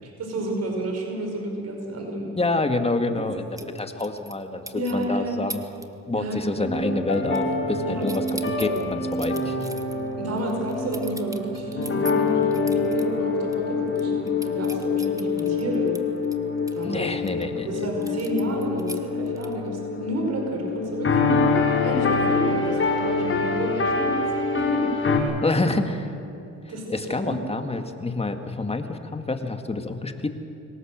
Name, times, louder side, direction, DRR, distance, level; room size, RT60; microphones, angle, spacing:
voice 1, 0.0-2.4 3.1-3.2 3.6-3.7 4.7-5.4 6.1-6.7 7.8-8.1 8.5-8.8 10.2-15.9 16.7-17.1 17.6-21.5 21.8-24.3 24.6-25.6 26.7-27.7, right 1 dB, 55° right, 1 dB, 5.4 m, -31 dB
voice 2, 2.4-4.6 4.9-5.6 6.1-8.2 8.6-9.6 16.8-17.8 25.4-26.1 26.9-30.3, left 2 dB, 20° left, 6 dB, 2.0 m, -27 dB
sound 1, 3.6-4.4 4.7-5.0 5.5-5.8 6.1-6.5 6.7-7.7 8.0-13.0 13.5-13.6 13.9-17.4 18.0-19.7, right 2 dB, 10° right, 1.5 m, -41 dB
sound 2, 6.6-25.2, left 4 dB, 45° left, 5.7 m, -25 dB
26.5 x 18.0 x 7.6 m, 2.9 s
cardioid pair, 90°, 30 cm